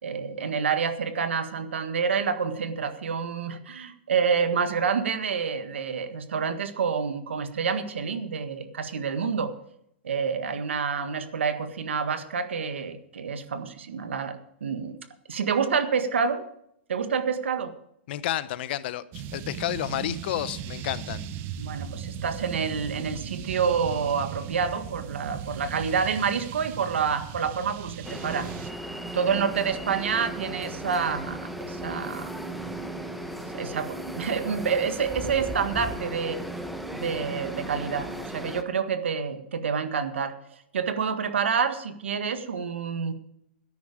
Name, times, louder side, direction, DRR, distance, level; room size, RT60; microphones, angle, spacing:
voice 1, 0.0-9.5 10.0-15.0 15.3-16.4 16.9-17.7 21.6-28.5 29.1-32.3 33.5-36.4 36.9-40.3 40.7-43.1, right 6 dB, 90° right, 9 dB, 1.7 m, -28 dB
voice 2, 18.1-21.3, left 13 dB, 60° left, 16 dB, 0.9 m, -31 dB
sound 1, 19.1-28.7, right 9 dB, 35° right, 1.0 m, -38 dB
sound 2, 28.0-38.6, right 1 dB, ahead, 1.2 m, -36 dB
13.5 x 10.5 x 5.0 m, 0.74 s
hypercardioid pair, 130°, 6 cm